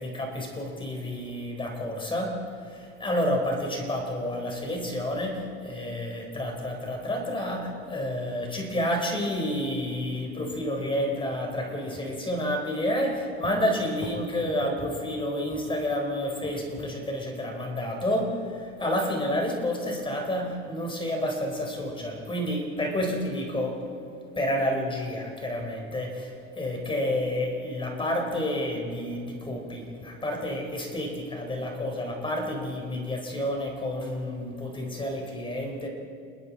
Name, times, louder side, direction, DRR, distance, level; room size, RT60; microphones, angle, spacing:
voice 1, 0.0-23.9 24.4-35.9, left 1 dB, 15° left, 2 dB, 4.4 m, -30 dB
29.0 x 21.5 x 4.3 m, 2.6 s
supercardioid pair, 120°, 30 cm